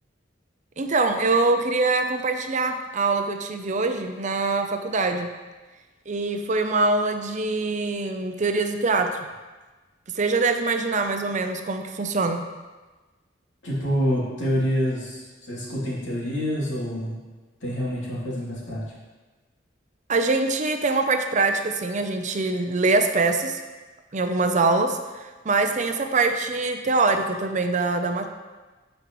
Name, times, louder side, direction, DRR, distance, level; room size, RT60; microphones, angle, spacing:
voice 1, 0.8-5.3 6.1-9.2 10.1-12.4 20.1-23.6 24.1-28.3, right 3 dB, 40° right, 6 dB, 0.6 m, -24 dB
voice 2, 13.6-17.2 17.6-18.8, equal, 80° left, -6 dB, 2.8 m, -27 dB
12.5 x 5.4 x 3.1 m, 1.3 s
head